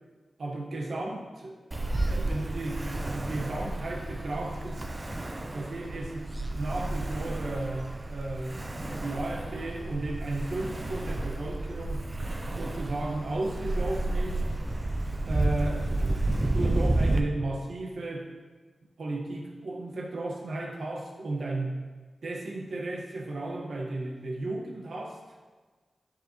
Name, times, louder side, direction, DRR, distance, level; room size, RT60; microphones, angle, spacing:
voice 1, 0.4-1.5 2.0-4.8 5.5-8.6 9.0-12.0 12.6-14.4 15.2-18.3 19.0-21.8 22.2-25.2, right 2 dB, 75° right, 0 dB, 1.5 m, -34 dB
Ocean, 1.7-17.2, right 2 dB, 30° right, 0.7 m, -31 dB
11.5 x 7.1 x 3.2 m, 1.3 s
wide cardioid pair, 75°, 0 cm